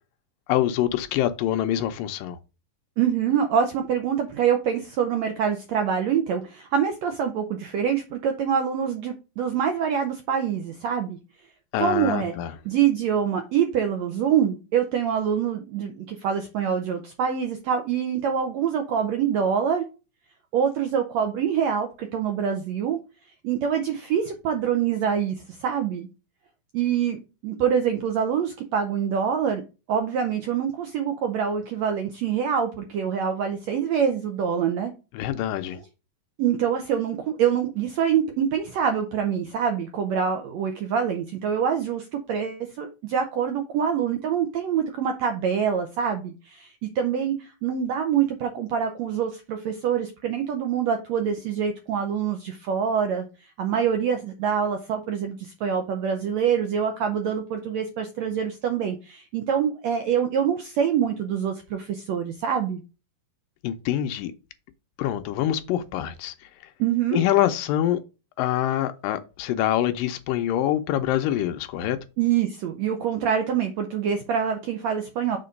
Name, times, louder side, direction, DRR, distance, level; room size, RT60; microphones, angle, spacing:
voice 1, 0.5-2.4 11.7-12.5 35.1-35.8 63.6-64.3 65.0-66.3 67.1-68.0 68.4-72.0, left 12 dB, 80° left, 2.3 m, -25 dB
voice 2, 3.0-11.2 11.8-12.4 12.6-19.8 20.5-23.0 23.4-26.1 26.7-29.6 29.9-34.9 36.4-53.3 53.6-62.8 66.8-67.2 72.2-75.4, right 8 dB, 80° right, 1.6 m, -25 dB
6.8 x 3.8 x 5.2 m
omnidirectional pair, 4.1 m